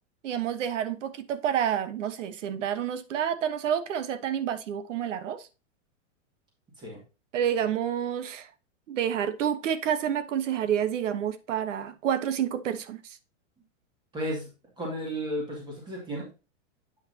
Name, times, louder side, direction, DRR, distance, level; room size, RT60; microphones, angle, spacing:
voice 1, 0.2-5.4 7.3-8.5 8.9-13.2, right 9 dB, 75° right, 1.1 m, -29 dB
voice 2, 14.1-14.5 14.8-16.3, equal, 10° right, 2.3 m, -33 dB
8.5 x 5.8 x 2.8 m
supercardioid pair, 175°, 37 cm